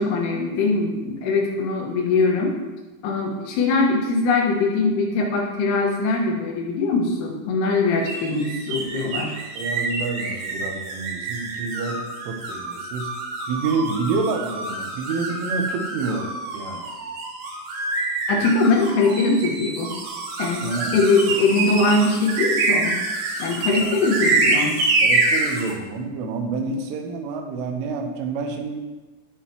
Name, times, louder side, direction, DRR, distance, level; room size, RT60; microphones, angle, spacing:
voice 1, 0.0-2.6 3.0-9.4 18.3-19.9 20.4-20.6 20.9-22.9 23.4-24.8, left 3 dB, 85° left, -1 dB, 4.1 m, -21 dB
sound 1, 8.1-25.7, right 3 dB, 60° right, 3.1 m, -26 dB
voice 2, 9.6-13.1 13.5-16.9 20.6-21.0 23.6-24.0 25.0-28.8, right 4 dB, 85° right, 3 dB, 3.6 m, -28 dB
18.0 x 6.5 x 3.0 m, 1.2 s
omnidirectional pair, 5.5 m